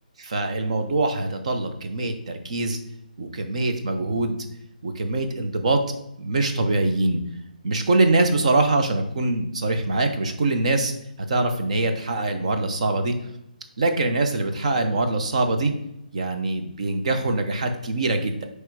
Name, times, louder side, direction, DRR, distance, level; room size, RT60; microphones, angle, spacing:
voice 1, 0.2-2.8 3.2-4.4 4.8-5.8 6.2-7.2 7.6-10.9 11.3-13.1 13.8-15.7 16.1-18.5, right 2 dB, 45° right, 6 dB, 1.0 m, -23 dB
9.1 x 3.4 x 5.2 m, 0.81 s
figure-of-eight pair, 140°, 5 cm